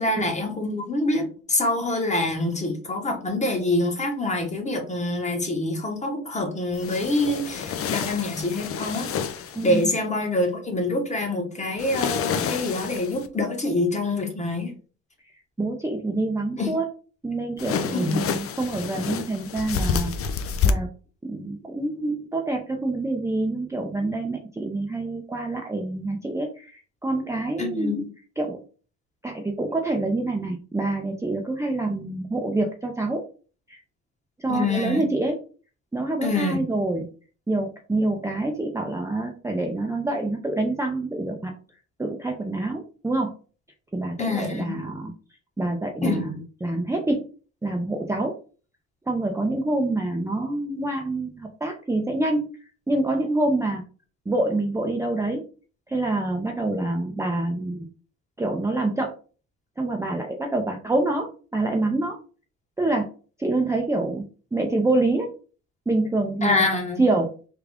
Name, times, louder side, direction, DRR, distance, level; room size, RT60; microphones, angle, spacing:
voice 1, 0.0-14.7 16.6-16.7 17.9-18.2 27.6-28.1 34.5-35.1 36.2-36.6 44.2-44.8 46.0-46.2 66.4-67.0, left 2 dB, 25° left, 3 dB, 1.1 m, -26 dB
sound 1, 6.7-9.8 11.8-13.3 17.6-20.7, left 6 dB, 50° left, 0.5 m, -28 dB
voice 2, 15.6-16.9 17.2-20.1 20.6-20.9 21.2-28.1 28.4-28.6 29.2-33.2 33.7-33.8 34.4-35.4 35.9-37.1 37.5-41.5 42.0-43.3 43.9-45.1 45.6-47.3 47.6-48.4 49.1-52.5 52.9-53.8 54.3-55.5 55.9-57.9 58.4-59.1 59.8-62.2 62.8-63.1 63.4-65.3 65.9-66.7 67.0-67.3, right 2 dB, 10° right, 1 dB, 0.5 m, -26 dB
3.5 x 2.4 x 3.4 m, 0.38 s
cardioid pair, 90°, 30 cm